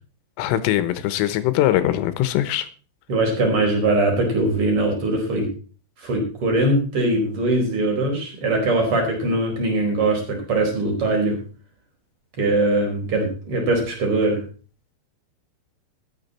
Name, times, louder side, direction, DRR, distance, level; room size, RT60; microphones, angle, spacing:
voice 1, 0.4-2.7, left 13 dB, 85° left, 3.7 m, -21 dB
voice 2, 3.1-5.5 6.0-11.4 12.4-14.4, right 2 dB, 30° right, 5.1 m, -21 dB
13.5 x 10.5 x 4.3 m
omnidirectional pair, 5.8 m